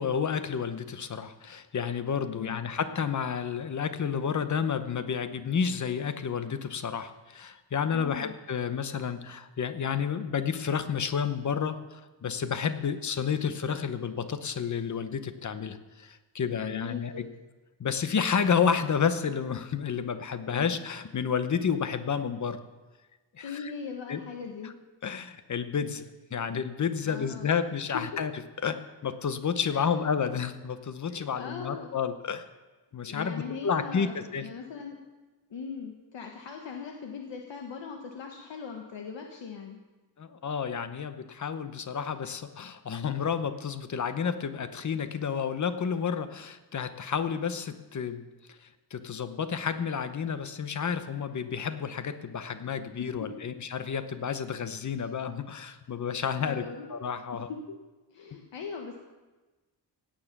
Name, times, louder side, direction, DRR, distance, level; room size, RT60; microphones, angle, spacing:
voice 1, 0.0-17.3 17.8-22.6 23.4-23.7 24.1-24.2 24.6-24.7 25.0-26.1 26.3-28.3 28.6-32.4 32.9-34.5 40.2-48.3 48.9-57.5, left 7 dB, 40° left, 10 dB, 0.9 m, -30 dB
voice 2, 2.3-2.6 7.9-8.3 16.5-17.2 20.5-20.7 23.4-24.8 27.0-27.5 27.9-28.0 29.7-29.9 31.1-32.0 33.0-35.0 35.5-39.8 53.0-53.3 55.0-55.1 56.4-56.9 57.3-57.8 58.1-59.0, left 5 dB, 75° left, 2 dB, 1.4 m, -40 dB
17.0 x 8.9 x 6.0 m, 1.2 s
wide cardioid pair, 165°, 44 cm